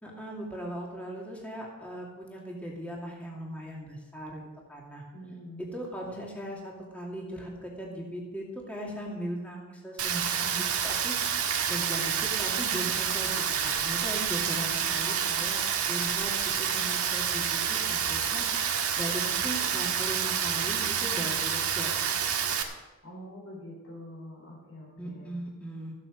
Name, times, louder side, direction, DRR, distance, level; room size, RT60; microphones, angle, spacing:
voice 1, 0.0-5.0 5.6-11.2 11.7-13.3 13.6-15.6 15.9-16.3 16.6-18.4 19.0-22.2 25.0-25.9, right 1 dB, 5° left, -3 dB, 2.5 m, -38 dB
voice 2, 5.1-5.6 14.7-15.2 23.0-25.3, equal, 75° left, -2 dB, 4.1 m, -45 dB
Rain, 10.0-22.6, right 8 dB, 85° right, 1.6 m, -28 dB
14.5 x 9.0 x 6.4 m, 1.1 s
head